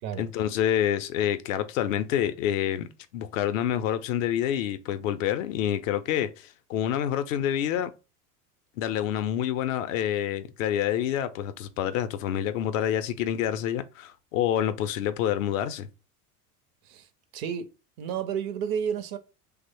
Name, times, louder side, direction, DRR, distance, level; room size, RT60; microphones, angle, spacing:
voice 1, 0.2-2.9 3.1-7.9 8.8-15.9, left 10 dB, 60° left, 0.5 m, -27 dB
voice 2, 17.3-17.7 18.0-19.2, right 8 dB, 45° right, 0.5 m, -31 dB
2.9 x 2.0 x 4.1 m
figure-of-eight pair, 80°, 47 cm